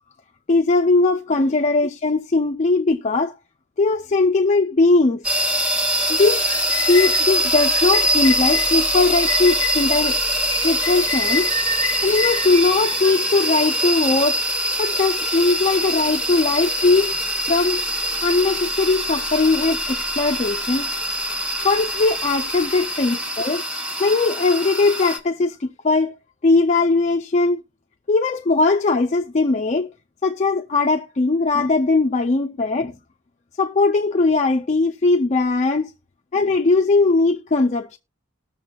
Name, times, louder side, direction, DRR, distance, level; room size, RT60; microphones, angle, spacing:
voice 1, 0.5-3.3 3.8-5.2 6.1-6.4 6.9-10.2 10.6-11.5 12.0-14.4 14.8-17.2 17.5-17.8 18.2-20.9 21.6-23.6 24.0-26.1 26.4-27.6 28.1-29.9 30.2-32.9 33.6-35.9 36.3-38.0, left 3 dB, 35° left, 0.4 m, -19 dB
sound 1, 5.2-25.2, right 1 dB, 5° right, 1.1 m, -23 dB
sound 2, 5.9-13.7, left 5 dB, 15° left, 1.4 m, -30 dB
19.5 x 6.8 x 2.3 m
head